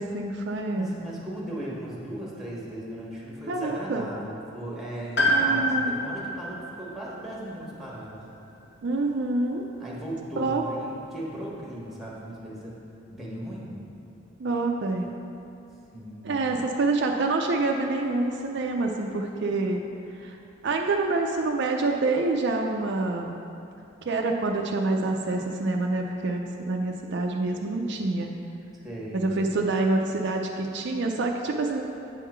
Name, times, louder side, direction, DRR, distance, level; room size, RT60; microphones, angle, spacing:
voice 1, 0.0-0.9 3.5-4.1 5.3-5.9 8.8-9.7 10.4-10.6 14.4-15.0 16.2-19.8 20.2-20.4 20.6-23.4 24.0-28.3 29.1-31.8, right 3 dB, 60° right, 1 dB, 0.5 m, -27 dB
voice 2, 0.8-8.2 9.8-12.8 13.1-13.8 15.9-16.3 28.8-29.3, right 1 dB, ahead, -5 dB, 1.3 m, -37 dB
Piano, 5.2-9.0 9.3-9.4 10.5-10.6, equal, 60° left, 1.2 m, -28 dB
8.2 x 3.6 x 5.7 m, 2.7 s
head